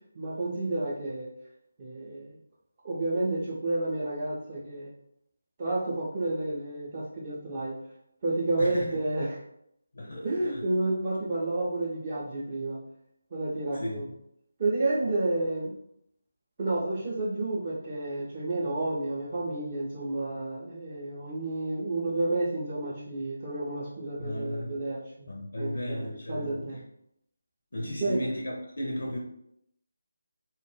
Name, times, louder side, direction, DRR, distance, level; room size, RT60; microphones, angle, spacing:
voice 1, 0.1-1.3 1.8-2.3 2.8-4.9 5.6-7.8 8.2-9.4 10.2-12.8 13.3-14.1 14.6-15.7 16.6-26.8 27.8-28.2, right 2 dB, 30° right, -6 dB, 0.4 m, -30 dB
voice 2, 9.9-10.6 13.7-14.0 24.2-24.8 25.3-26.7 27.7-29.2, left 1 dB, 55° left, -1 dB, 0.4 m, -35 dB
2.2 x 2.1 x 3.1 m, 0.75 s
figure-of-eight pair, 155°, 0 cm